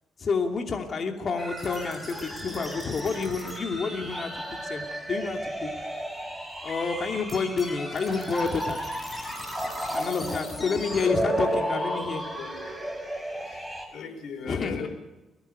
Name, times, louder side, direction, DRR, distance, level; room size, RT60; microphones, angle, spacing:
voice 1, 0.2-5.7 6.6-8.8 9.9-12.2 14.5-14.9, left 4 dB, 45° left, 4 dB, 2.8 m, -29 dB
sound 1, 1.4-13.9, right 1 dB, ahead, 5.9 m, -33 dB
sound 2, 1.6-11.1, left 1 dB, 20° left, 6.5 m, -42 dB
voice 2, 11.9-12.6 13.4-14.9, left 6 dB, 70° left, 7 dB, 5.1 m, -40 dB
23.0 x 18.0 x 6.8 m, 1.0 s
cardioid pair, 90°, 0 cm